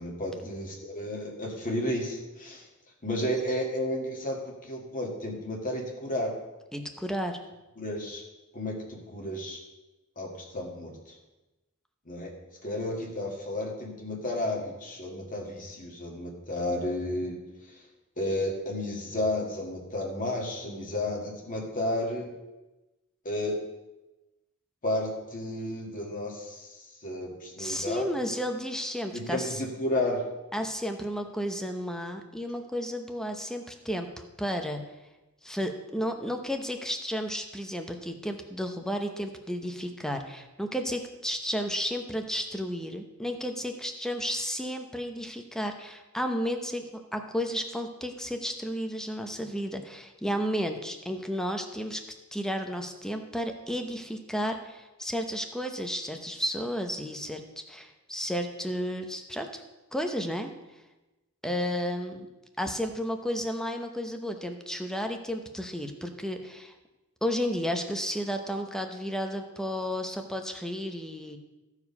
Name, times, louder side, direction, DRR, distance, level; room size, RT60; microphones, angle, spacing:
voice 1, 0.0-2.7 3.0-6.3 7.8-8.2 8.5-9.6 10.2-11.2 12.1-12.3 12.6-17.4 17.7-17.8 18.2-22.3 23.3-23.6 24.8-28.0 29.1-30.2, left 1 dB, 40° left, -1 dB, 1.8 m, -32 dB
voice 2, 6.7-7.4 27.6-29.6 30.5-34.1 34.4-34.8 35.4-52.0 52.3-57.4 57.7-59.6 59.9-60.5 61.4-62.3 62.6-66.7 67.2-71.4, equal, 5° left, 5 dB, 0.8 m, -32 dB
14.5 x 4.9 x 5.4 m, 1.1 s
head